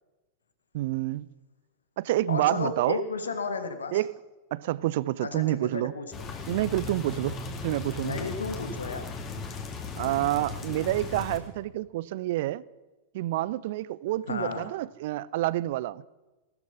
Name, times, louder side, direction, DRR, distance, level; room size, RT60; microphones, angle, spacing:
voice 1, 0.7-1.3 2.0-3.0 3.9-4.1 4.5-5.9 6.5-8.2 10.0-12.6 13.1-16.0, right 16 dB, 50° right, 0.4 m, -28 dB
voice 2, 2.3-4.0 5.2-6.3 8.0-9.1 10.0-10.1 14.3-14.7, left 4 dB, 70° left, 1.5 m, -33 dB
sound 1, 6.1-11.4, left 4 dB, 30° left, 2.4 m, -37 dB
16.0 x 13.0 x 5.7 m
figure-of-eight pair, 90°, 0 cm